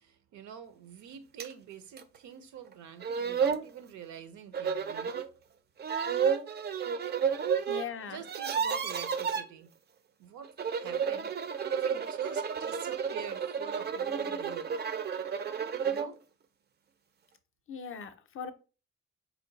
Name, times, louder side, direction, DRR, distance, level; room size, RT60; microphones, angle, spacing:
voice 1, 0.0-5.3 7.6-9.7 10.2-11.3 11.7-14.7 15.8-16.2, right 8 dB, 75° right, 0.7 m, -46 dB
sound 1, 1.4-1.5 2.0-2.1 2.7-2.8 3.0-3.7 4.5-5.3 5.8-7.9 8.1-9.4 10.4-16.1, right 7 dB, 35° right, 0.4 m, -31 dB
voice 2, 7.7-8.2 17.7-18.5, left 7 dB, 45° left, 0.5 m, -39 dB
4.4 x 2.2 x 3.8 m
cardioid pair, 90°, 30 cm